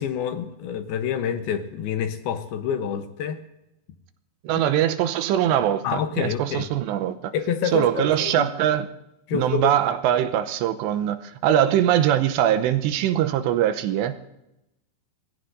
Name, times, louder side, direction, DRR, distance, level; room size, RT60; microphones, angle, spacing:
voice 1, 0.0-3.4 5.8-6.7 7.3-8.5 9.3-9.8, left 8 dB, 75° left, 2.5 m, -27 dB
voice 2, 4.4-7.3 7.7-8.9 9.3-14.2, right 11 dB, 85° right, 2.9 m, -22 dB
27.0 x 20.5 x 2.6 m
omnidirectional pair, 5.0 m